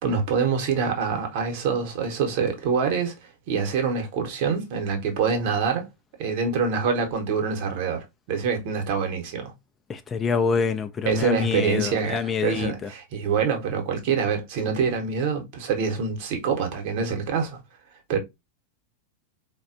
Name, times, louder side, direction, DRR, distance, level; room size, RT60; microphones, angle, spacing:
voice 1, 0.0-3.2 3.5-5.9 6.2-9.5 11.0-17.6 18.1-18.2, right 5 dB, 50° right, 0.9 m, -25 dB
voice 2, 9.9-12.9, left 5 dB, 20° left, 0.3 m, -26 dB
4.0 x 2.2 x 2.5 m
figure-of-eight pair, 90°, 0 cm